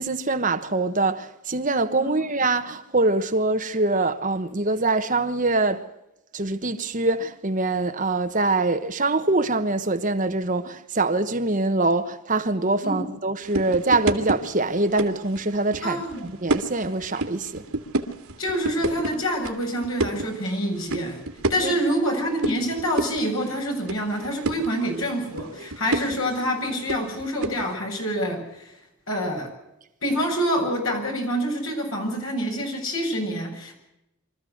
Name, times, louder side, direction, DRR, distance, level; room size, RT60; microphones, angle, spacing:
voice 1, 0.0-5.8 6.3-17.6 21.6-21.7, right 2 dB, 35° right, 1.2 m, -24 dB
sound 1, 13.4-27.7, right 2 dB, 85° right, 2.2 m, -31 dB
voice 2, 15.8-16.3 18.4-21.2 21.5-28.7 29.1-29.5 30.0-33.7, equal, 70° left, 7.3 m, -26 dB
25.0 x 14.0 x 7.9 m
head